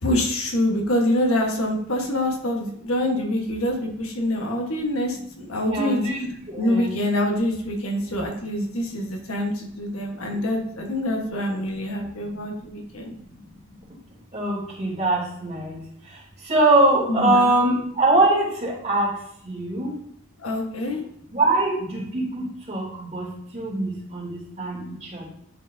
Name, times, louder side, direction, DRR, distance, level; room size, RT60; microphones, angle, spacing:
voice 1, 0.0-6.0 6.6-13.1 17.1-17.5 20.4-21.0, left 1 dB, 70° left, 1 dB, 1.3 m, -25 dB
voice 2, 5.7-6.2 6.5-6.9 10.1-10.2 13.5-13.6 14.3-19.2 19.4-20.0 20.9-21.0 21.3-23.3 23.5-25.3, right 2 dB, 35° right, -5 dB, 2.8 m, -23 dB
10.5 x 4.6 x 2.7 m, 0.69 s
head